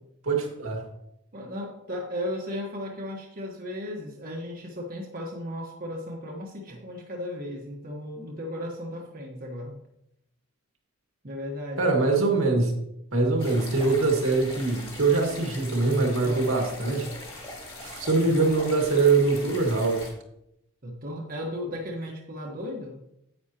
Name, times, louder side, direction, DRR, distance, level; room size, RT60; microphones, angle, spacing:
voice 1, 0.2-0.8 11.8-12.7 13.1-17.1 17.8-20.1, right 3 dB, 75° right, 1 dB, 1.9 m, -23 dB
voice 2, 1.3-9.8 11.2-11.9 16.2-16.6 20.8-23.0, left 1 dB, 40° right, -1 dB, 1.3 m, -35 dB
sound 1, 13.4-20.1, left 2 dB, 25° left, 2.5 m, -41 dB
9.8 x 8.9 x 2.9 m, 0.80 s
head